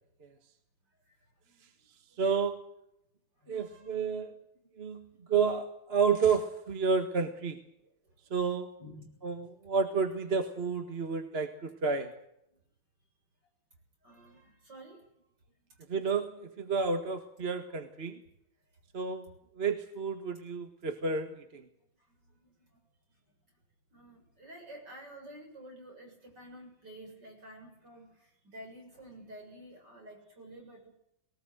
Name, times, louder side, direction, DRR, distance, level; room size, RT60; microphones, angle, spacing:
voice 1, 2.2-2.6 3.5-4.3 4.8-7.6 8.3-8.7 9.2-12.1 15.9-18.2 18.9-21.6, right 5 dB, 35° right, 7 dB, 1.7 m, -30 dB
voice 2, 3.4-3.9 7.0-7.1 8.8-9.2 14.0-15.0 16.8-17.1 17.7-17.8 22.4-22.5 23.9-28.1 28.4-30.9, right 1 dB, 60° right, 2 dB, 7.9 m, -50 dB
21.0 x 19.0 x 8.1 m, 0.78 s
omnidirectional pair, 2.1 m